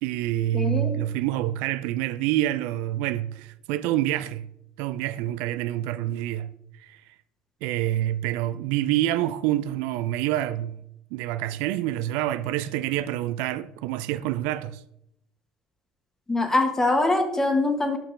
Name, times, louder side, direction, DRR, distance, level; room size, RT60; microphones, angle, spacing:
voice 1, 0.0-4.5 4.8-6.5 6.8-7.0 7.6-10.8 11.1-14.8, right 14 dB, 75° right, 0.3 m, -27 dB
voice 2, 0.5-1.0 16.3-18.0, left 2 dB, 15° left, 1.3 m, -23 dB
8.6 x 5.6 x 3.3 m
supercardioid pair, 80°, 3 cm